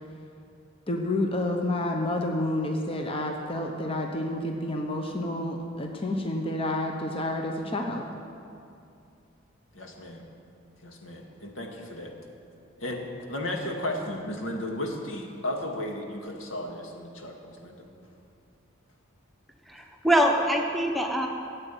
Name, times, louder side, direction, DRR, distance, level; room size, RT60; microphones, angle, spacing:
voice 1, 0.9-8.0, left 1 dB, 30° left, 2 dB, 1.0 m, -29 dB
voice 2, 9.7-10.2 10.8-12.1 12.8-13.0 13.3-17.8, left 1 dB, 80° left, 1 dB, 2.1 m, -34 dB
voice 3, 19.7-21.3, equal, ahead, 1 dB, 1.1 m, -24 dB
14.0 x 8.1 x 9.2 m, 2.6 s
head